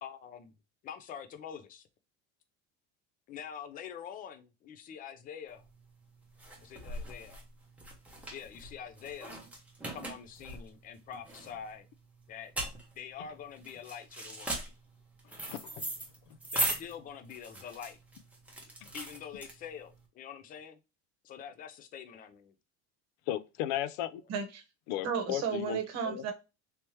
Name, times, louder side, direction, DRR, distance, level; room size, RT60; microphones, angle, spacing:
voice 1, 0.0-0.5 0.8-1.9 3.3-5.6 6.6-7.4 8.3-9.4 9.9-11.9 12.3-12.5 13.0-14.6 16.5-18.0 18.9-20.8 21.2-22.5, left 8 dB, 25° left, 0.3 m, -45 dB
sound 1, 5.6-20.0, right 1 dB, 5° right, 0.7 m, -39 dB
voice 2, 15.4-15.9 18.8-18.9 23.3-24.2 24.9-26.2, left 12 dB, 80° left, 0.5 m, -35 dB
voice 3, 24.3-24.6 25.0-26.3, right 6 dB, 45° right, 1.0 m, -33 dB
3.4 x 2.9 x 3.0 m
cardioid pair, 145°, 37 cm